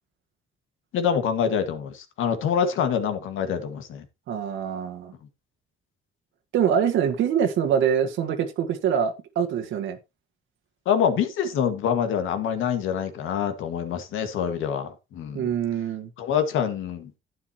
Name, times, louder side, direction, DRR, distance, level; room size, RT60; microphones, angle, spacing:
voice 1, 0.9-4.1 10.9-15.5 16.2-17.1, left 8 dB, 85° left, 1.9 m, -26 dB
voice 2, 4.3-5.1 6.5-10.0 15.3-16.1, right 8 dB, 80° right, 1.7 m, -24 dB
11.0 x 9.6 x 3.0 m
cardioid pair, 90°, 20 cm